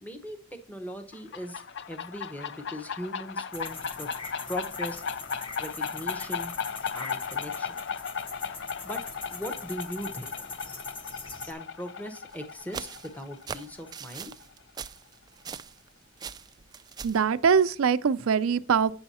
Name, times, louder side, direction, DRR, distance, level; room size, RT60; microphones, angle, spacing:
voice 1, 0.0-4.1 4.5-5.0 5.6-6.5 6.9-7.8 8.8-9.0 9.3-10.6 11.5-14.3, equal, 10° left, 0.9 m, -39 dB
sound 1, 1.1-14.5, left 6 dB, 60° left, 0.5 m, -36 dB
sound 2, 3.5-11.5, left 3 dB, 25° left, 1.1 m, -43 dB
sound 3, 12.3-15.9 16.2-17.3, right 6 dB, 20° right, 0.3 m, -41 dB
voice 2, 17.0-18.9, right 6 dB, 90° right, 0.5 m, -23 dB
8.7 x 6.3 x 4.2 m
head